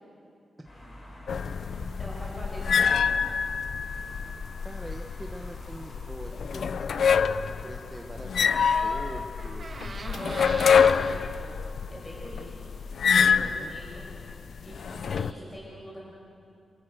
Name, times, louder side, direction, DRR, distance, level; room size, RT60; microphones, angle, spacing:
sound 1, 0.6-14.4, left 1 dB, 40° left, 5.7 m, -48 dB
sound 2, 1.3-15.3, left 6 dB, 70° left, 0.6 m, -26 dB
voice 1, 1.3-1.9 4.6-9.7 13.3-13.8, right 1 dB, 15° right, 2 dB, 1.2 m, -43 dB
voice 2, 2.0-3.3 10.0-12.7 13.2-14.0 14.6-16.0, equal, 25° left, -5 dB, 5.5 m, -42 dB
Door, 8.5-11.0 12.8-12.9 13.1-13.5, right 3 dB, 45° right, 2.2 m, -40 dB
27.5 x 14.5 x 7.8 m, 2.6 s
wide cardioid pair, 105°, 0 cm